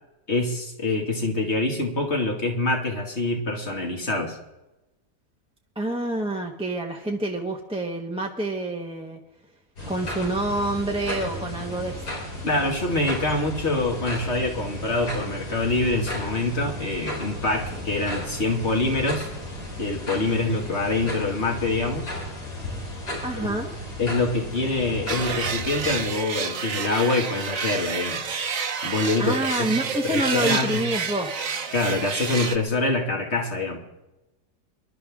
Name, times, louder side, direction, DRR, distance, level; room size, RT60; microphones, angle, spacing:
voice 1, 0.3-4.4 12.4-19.3 19.8-22.1 23.4-23.6 24.0-28.2 28.8-29.7 30.0-30.8 31.7-33.8, left 2 dB, 40° left, 2 dB, 2.7 m, -25 dB
voice 2, 5.7-9.2 9.9-12.0 23.2-23.7 29.2-31.4, right 1 dB, 5° right, 0 dB, 1.1 m, -27 dB
sound 1, 9.8-26.1, left 1 dB, 85° left, 5.1 m, -34 dB
sound 2, 25.1-32.6, right 6 dB, 55° right, 1.5 m, -29 dB
26.0 x 12.0 x 3.7 m, 0.99 s
omnidirectional pair, 1.7 m